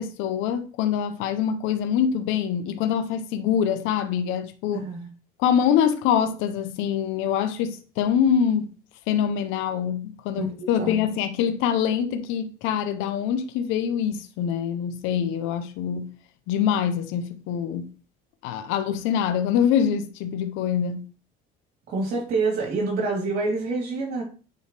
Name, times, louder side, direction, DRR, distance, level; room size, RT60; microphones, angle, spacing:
voice 1, 0.0-4.9 5.4-8.8 9.1-16.1 16.5-17.9 18.4-21.0, left 8 dB, 80° left, 0.8 m, -24 dB
voice 2, 4.7-5.1 10.4-11.0 21.9-24.2, right 3 dB, 50° right, 3.5 m, -27 dB
9.0 x 3.5 x 3.2 m
cardioid pair, 145°, 20 cm